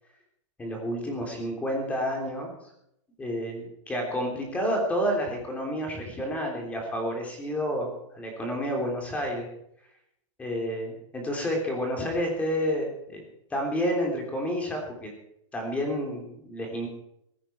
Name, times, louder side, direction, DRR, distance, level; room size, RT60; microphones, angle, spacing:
voice 1, 0.6-2.5 3.2-9.5 10.4-13.2 13.5-15.1 15.5-16.9, equal, 10° left, 1 dB, 3.4 m, -30 dB
17.5 x 15.5 x 4.5 m, 0.76 s
supercardioid pair, 170°, 17 cm